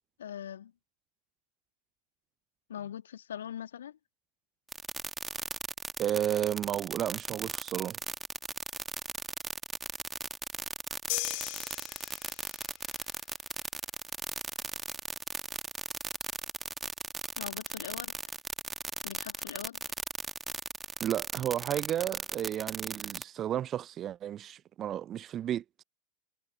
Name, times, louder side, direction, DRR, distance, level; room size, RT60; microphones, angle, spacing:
voice 1, 0.2-0.7 2.7-4.0 17.4-18.1 19.0-19.8, left 9 dB, 65° left, 2.2 m, -41 dB
sound 1, 4.7-23.2, right 4 dB, 10° right, 1.9 m, -36 dB
voice 2, 6.0-8.0 21.0-25.8, right 11 dB, 30° right, 0.5 m, -32 dB
sound 2, 11.1-12.7, left 32 dB, 45° left, 1.0 m, -36 dB
figure-of-eight pair, 90°, 0 cm